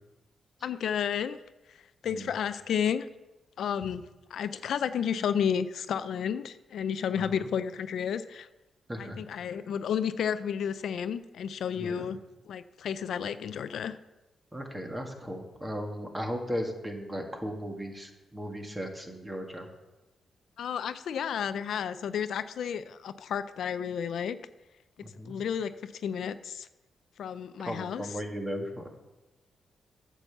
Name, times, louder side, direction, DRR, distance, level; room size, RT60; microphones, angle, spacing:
voice 1, 0.6-1.4 1.7-3.1 3.6-4.0 4.3-8.5 9.0-12.2 12.5-14.0 20.6-24.4 25.3-26.7 27.2-28.1, left 8 dB, 75° left, 12 dB, 0.4 m, -32 dB
voice 2, 7.1-7.5 8.9-9.2 11.7-12.1 14.5-19.7 25.0-25.4 27.7-28.9, equal, 15° right, 3 dB, 1.8 m, -36 dB
9.0 x 6.8 x 7.1 m, 1.0 s
cardioid pair, 95°, 0 cm